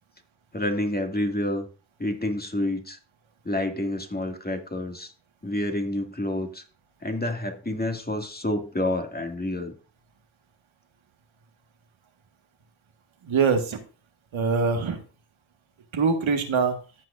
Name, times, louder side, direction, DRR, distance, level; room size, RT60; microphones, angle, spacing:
voice 1, 0.5-1.7 2.0-3.0 3.4-5.1 5.4-6.6 7.0-9.7, left 1 dB, 20° left, 4 dB, 2.2 m, -28 dB
voice 2, 13.3-13.8 14.3-15.0 15.9-16.7, right 5 dB, 70° right, 5 dB, 1.7 m, -23 dB
14.5 x 6.1 x 2.5 m, 0.36 s
supercardioid pair, 45°, 49 cm